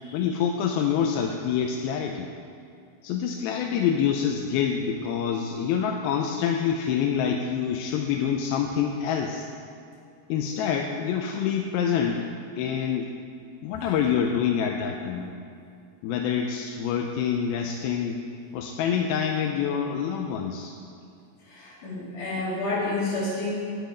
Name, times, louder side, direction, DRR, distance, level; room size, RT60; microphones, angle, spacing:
voice 1, 0.1-2.3 3.0-9.5 10.3-13.1 13.6-15.3 16.0-18.2 18.5-20.8, left 7 dB, 85° left, 2 dB, 2.4 m, -26 dB
voice 2, 21.4-23.5, left 2 dB, 60° left, -8 dB, 4.1 m, -30 dB
9.6 x 9.1 x 5.0 m, 2.4 s
omnidirectional pair, 4.3 m